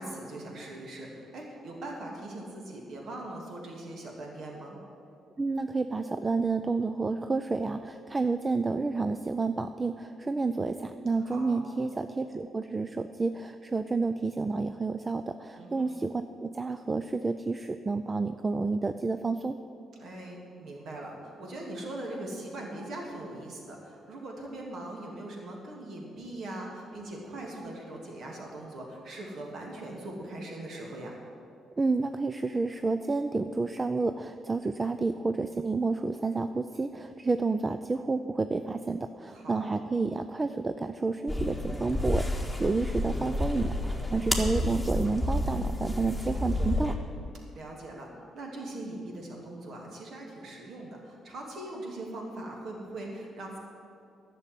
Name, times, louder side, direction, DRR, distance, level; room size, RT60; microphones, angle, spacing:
voice 1, 0.0-4.8 11.2-11.6 15.6-15.9 20.0-31.2 39.3-39.7 44.2-44.4 47.5-48.1 48.3-53.6, right 1 dB, 65° right, -1 dB, 2.8 m, -41 dB
voice 2, 5.4-19.6 31.8-46.9, right 3 dB, 25° right, 9 dB, 0.4 m, -30 dB
sound 1, 41.3-46.9, left 1 dB, ahead, 1.7 m, -30 dB
11.0 x 6.9 x 9.2 m, 2.4 s
cardioid pair, 90°, 0 cm